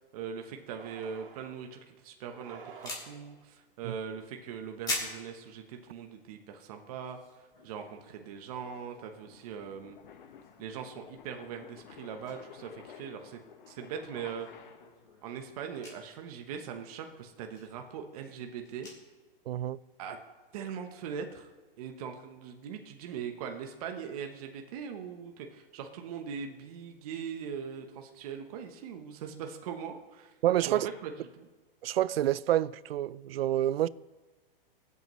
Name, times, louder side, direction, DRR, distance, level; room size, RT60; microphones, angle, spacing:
voice 1, 0.1-7.2 7.6-10.0 10.6-13.4 13.7-14.5 15.2-18.9 20.0-20.2 20.5-21.5 21.8-30.3 30.7-31.5, right 7 dB, 40° right, 1.0 m, -41 dB
sound 1, 0.8-1.6 2.2-3.4, right 6 dB, 60° right, 1.9 m, -51 dB
sound 2, 2.7-9.9 10.2-11.1 11.4-11.7 11.9-12.4 12.7-12.8 13.3-13.4 13.8-19.4 19.8-19.9 20.3-20.4 20.7-21.5, left 2 dB, 15° left, 4.1 m, -44 dB
sound 3, 7.6-15.2, left 8 dB, 55° left, 1.4 m, -53 dB
voice 2, 19.5-19.8 30.4-30.9 31.8-33.9, right 12 dB, 85° right, 0.5 m, -28 dB
23.0 x 8.2 x 3.1 m
hypercardioid pair, 160°, 29 cm